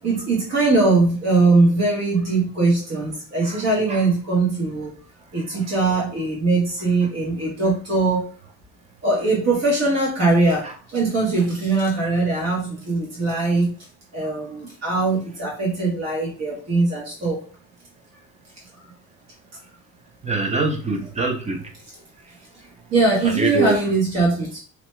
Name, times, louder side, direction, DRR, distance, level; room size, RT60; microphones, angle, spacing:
voice 1, 0.0-4.9 5.3-8.3 9.0-13.7 14.1-17.4 22.9-24.6, right 3 dB, 45° right, -4 dB, 1.1 m, -21 dB
voice 2, 20.2-21.6 23.3-23.7, right 3 dB, 20° right, 2 dB, 0.6 m, -23 dB
2.9 x 2.1 x 3.1 m, 0.40 s
cardioid pair, 135°, 36 cm